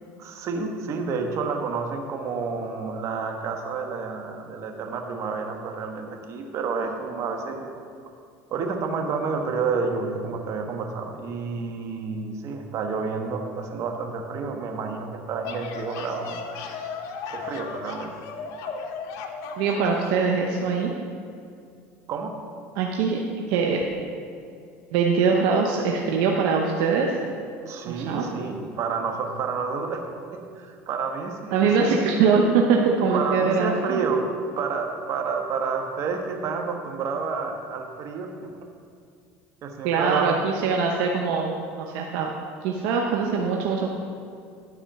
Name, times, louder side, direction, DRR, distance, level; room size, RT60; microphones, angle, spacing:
voice 1, 0.2-7.7 8.5-16.4 17.3-18.1 22.1-22.3 27.7-32.0 33.1-34.3 34.5-38.5 39.6-40.4, right 5 dB, 50° right, 3 dB, 1.2 m, -29 dB
sound 1, 15.2-20.2, left 5 dB, 65° left, 0.8 m, -35 dB
voice 2, 19.6-21.0 22.8-23.2 23.5-23.8 24.9-27.2 27.9-28.3 31.5-34.0 39.8-42.3 42.6-43.9, right 5 dB, 75° right, 0 dB, 0.8 m, -22 dB
12.0 x 4.3 x 5.7 m, 2.4 s
supercardioid pair, 95°, 6 cm